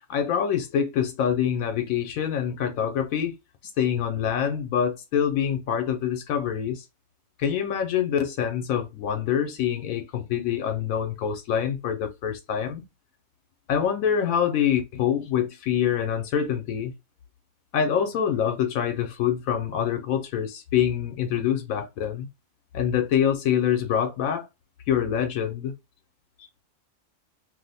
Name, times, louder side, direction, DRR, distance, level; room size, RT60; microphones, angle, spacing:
voice 1, 0.1-3.3 3.8-6.9 7.4-12.8 13.7-16.9 17.7-22.3 22.7-24.4 24.9-25.7, left 8 dB, 80° left, 1.0 m, -25 dB
2.8 x 2.0 x 4.0 m
omnidirectional pair, 1.4 m